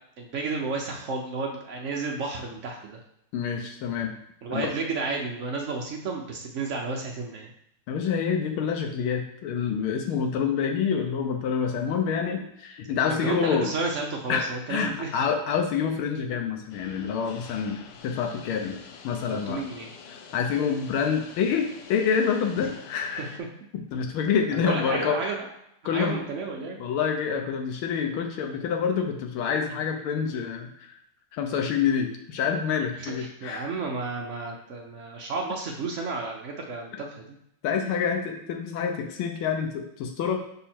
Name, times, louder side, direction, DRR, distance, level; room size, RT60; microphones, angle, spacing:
voice 1, 0.2-3.0 4.4-7.5 13.0-15.1 19.3-19.9 23.2-23.5 24.5-25.5 25.9-26.8 33.0-37.2, right 3 dB, 90° right, 0 dB, 0.6 m, -32 dB
voice 2, 3.3-4.1 4.5-4.7 7.9-13.7 14.3-19.6 20.1-23.3 23.9-25.2 25.8-26.2 26.8-31.0 31.3-33.7 37.6-40.4, left 6 dB, 85° left, 3 dB, 1.6 m, -27 dB
sound 1, 16.7-23.4, left 6 dB, 70° left, 1.1 m, -47 dB
5.6 x 4.0 x 4.3 m, 0.77 s
omnidirectional pair, 2.2 m